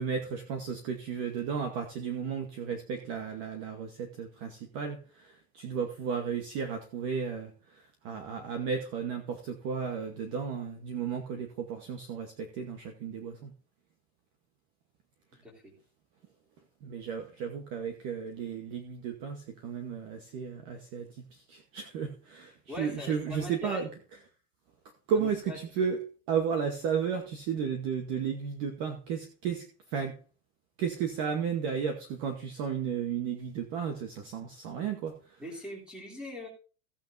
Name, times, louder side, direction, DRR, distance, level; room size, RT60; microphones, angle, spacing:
voice 1, 0.0-13.5 16.8-23.9 25.1-26.0 26.3-30.2 30.8-35.4, right 6 dB, 30° right, 5 dB, 1.1 m, -34 dB
voice 2, 22.7-23.8 25.1-25.6 35.4-36.5, left 1 dB, ahead, 0 dB, 2.9 m, -41 dB
16.0 x 8.7 x 2.6 m, 0.36 s
supercardioid pair, 180°, 47 cm